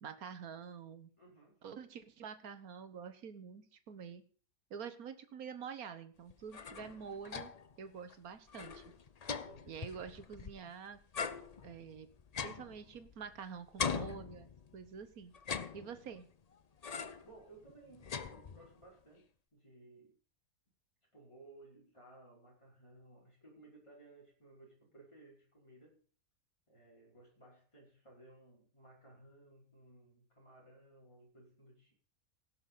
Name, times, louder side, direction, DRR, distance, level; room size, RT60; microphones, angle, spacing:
voice 1, 0.0-1.1 1.6-4.2 4.7-7.5 7.8-8.8 9.7-11.0 11.6-12.1 12.4-14.5 14.7-15.3 15.7-16.3, right 6 dB, 65° right, 11 dB, 1.6 m, -47 dB
voice 2, 1.2-1.6 9.4-10.1 17.2-20.2 21.1-26.0 26.7-31.9, right 2 dB, 15° left, -4 dB, 5.2 m, -59 dB
sound 1, 6.3-7.8 8.1-8.2 8.5-10.7 11.1-13.4 13.8-14.9 15.3-16.3 16.8-17.3 17.7-18.8, left 6 dB, 55° left, 0.4 m, -42 dB
16.5 x 6.8 x 5.6 m, 0.43 s
omnidirectional pair, 1.7 m